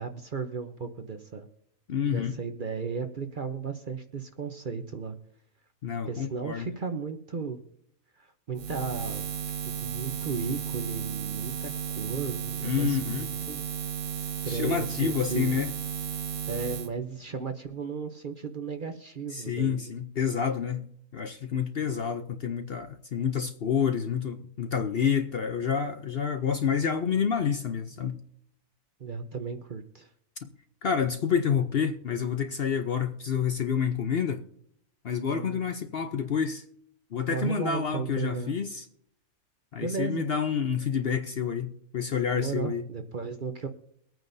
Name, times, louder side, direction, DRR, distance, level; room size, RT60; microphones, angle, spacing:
voice 1, 0.0-1.5 2.1-5.2 6.1-7.6 8.2-9.3 9.6-13.6 14.2-15.6 16.5-20.0 21.8-21.9 29.0-30.1 35.3-35.6 37.3-38.5 39.8-40.3 42.4-43.7, right 5 dB, 45° right, 0.8 m, -35 dB
voice 2, 1.9-2.3 5.8-6.7 12.6-13.3 14.5-15.7 19.3-28.2 30.4-30.5 30.8-34.4 35.0-36.6 37.1-38.8 39.7-42.8, left 7 dB, 55° left, 0.7 m, -28 dB
Buzz, 8.5-16.9, right 8 dB, 70° right, 1.4 m, -34 dB
23.0 x 9.0 x 2.6 m
omnidirectional pair, 1.5 m